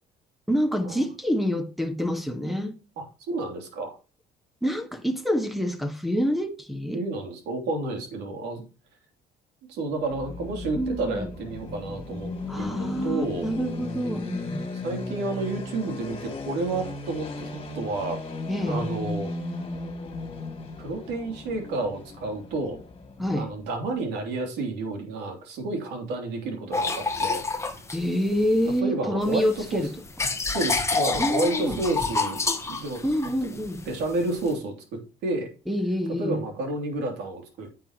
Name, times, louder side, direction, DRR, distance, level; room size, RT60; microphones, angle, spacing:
voice 1, 0.5-2.8 4.6-7.0 10.8-11.3 12.5-14.6 18.5-18.8 23.2-23.5 27.9-29.9 31.2-31.8 33.0-33.8 35.7-36.4, equal, ahead, 1.6 m, -27 dB
voice 2, 3.0-4.0 6.9-8.6 9.7-12.3 12.6-13.5 14.8-18.2 18.7-19.3 20.8-22.8 23.3-27.4 28.8-29.9 30.5-32.4 32.7-33.1 33.4-33.5 33.9-34.7 35.2-35.5 36.2-37.7, right 2 dB, 85° right, 3.0 m, -30 dB
sound 1, 10.0-23.9, left 2 dB, 30° left, 2.7 m, -36 dB
sound 2, 26.7-28.8 29.2-34.5, left 4 dB, 15° left, 1.4 m, -29 dB
9.7 x 8.0 x 3.0 m
cardioid pair, 110°, 17 cm